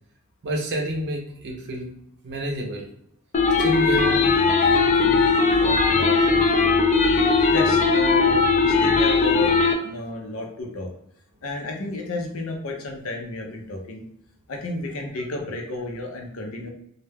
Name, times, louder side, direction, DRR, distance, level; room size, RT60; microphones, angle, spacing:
voice 1, 0.4-1.9 2.2-2.9 3.6-5.3 5.6-6.4, equal, 55° right, 0 dB, 0.5 m, -30 dB
sound 1, 3.3-9.7, left 4 dB, 35° left, 0.3 m, -19 dB
voice 2, 7.5-10.9 11.4-14.0 14.5-16.7, left 2 dB, 80° left, 2 dB, 0.6 m, -32 dB
2.3 x 2.1 x 3.3 m, 0.72 s
head